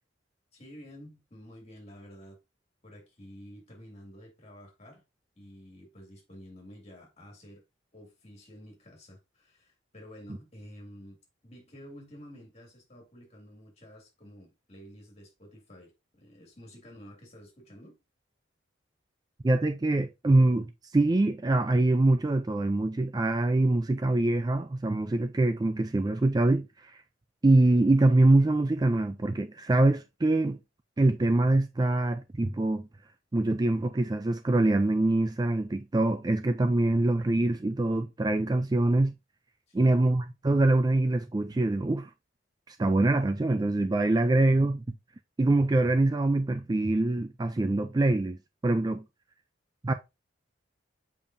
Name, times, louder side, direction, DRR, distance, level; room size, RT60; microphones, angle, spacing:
voice 1, 0.5-2.4 2.8-5.0 5.4-7.6 7.9-11.2 11.4-18.0 39.7-40.0, equal, 35° left, 2.4 m, -50 dB
voice 2, 19.4-27.0 27.4-30.6 31.0-32.9 33.3-39.1 39.7-42.1 42.7-44.8 45.4-48.4 48.6-49.0 49.8-49.9, right 2 dB, 20° right, 0.3 m, -24 dB
7.2 x 5.2 x 2.6 m
head